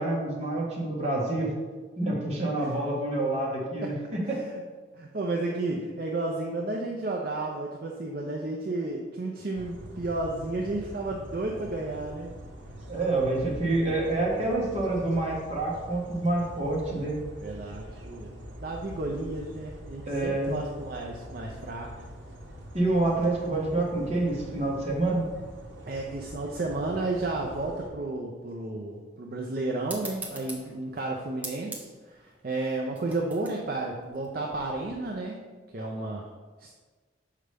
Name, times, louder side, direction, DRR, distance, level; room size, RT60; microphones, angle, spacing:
voice 1, 0.0-1.5 2.0-4.4 12.9-17.2 20.1-20.5 22.7-25.3, right 2 dB, 35° right, -3 dB, 1.4 m, -27 dB
voice 2, 4.2-4.6 5.0-12.3 17.4-18.3 18.6-21.9 25.9-35.4 35.7-36.3 36.6-36.7, right 2 dB, 50° right, -1 dB, 0.5 m, -32 dB
sound 1, 9.5-27.9, equal, 85° right, 0.9 m, -44 dB
sound 2, 29.9-34.9, right 2 dB, 10° right, 0.8 m, -43 dB
6.6 x 4.9 x 3.4 m, 1.4 s
head